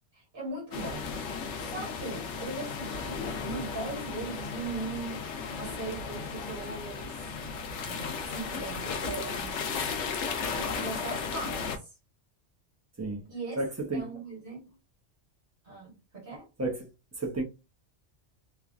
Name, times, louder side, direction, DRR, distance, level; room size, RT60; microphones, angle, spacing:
voice 1, 0.1-1.1 1.5-7.2 7.8-9.6 10.5-11.8 13.2-13.6 13.9-14.7 15.6-16.5, right 3 dB, 50° right, 1.6 m, -39 dB
sound 1, 0.7-11.8, left 5 dB, 80° left, 0.9 m, -35 dB
voice 2, 13.6-14.1 16.6-16.8 17.2-17.4, right 2 dB, 20° right, 0.6 m, -31 dB
3.1 x 2.2 x 2.4 m
omnidirectional pair, 1.2 m